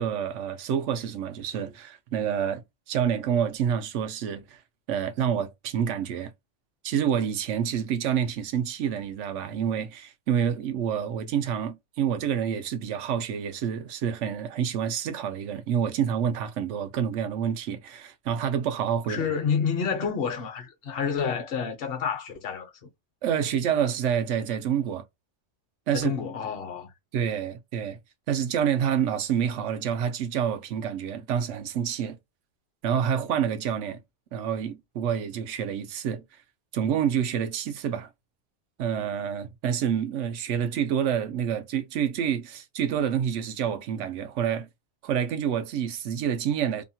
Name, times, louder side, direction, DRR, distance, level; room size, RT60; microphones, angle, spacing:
voice 1, 0.0-4.6 4.9-6.3 6.8-19.2 23.2-25.0 25.9-26.1 27.1-28.0 28.3-32.2 32.8-34.0 34.3-36.2 36.7-38.1 38.8-44.7 45.0-46.8, right 8 dB, 80° right, 0.9 m, -28 dB
voice 2, 19.1-22.7 25.9-26.9, left 6 dB, 55° left, 1.0 m, -29 dB
2.9 x 2.2 x 2.7 m
omnidirectional pair, 1.2 m